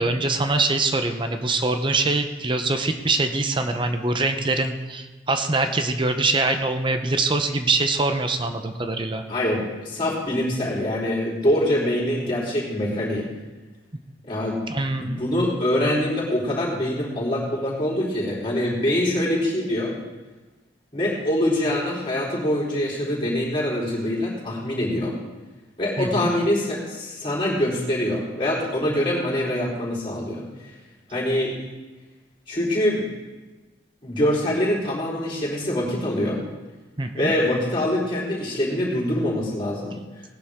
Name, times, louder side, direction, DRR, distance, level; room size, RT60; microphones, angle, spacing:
voice 1, 0.0-9.2 14.7-15.2 26.0-26.3 37.0-37.3, right 3 dB, 25° right, 7 dB, 0.8 m, -23 dB
voice 2, 9.3-13.3 14.3-14.6 14.9-20.0 20.9-25.2 25.8-30.4 31.1-31.6 32.5-33.0 34.0-36.4 37.1-40.0, left 1 dB, 25° left, -5 dB, 4.2 m, -24 dB
18.5 x 11.0 x 3.7 m, 1.2 s
head